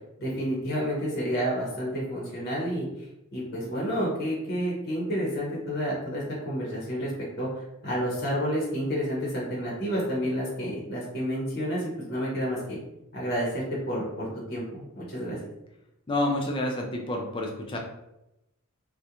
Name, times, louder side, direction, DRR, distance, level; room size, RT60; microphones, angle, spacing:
voice 1, 0.2-2.9 3.3-7.1 7.4-12.8 13.1-15.4, equal, 45° left, -5 dB, 0.8 m, -30 dB
voice 2, 16.1-17.8, left 1 dB, 25° left, 1 dB, 0.3 m, -28 dB
2.4 x 2.1 x 2.8 m, 0.89 s
head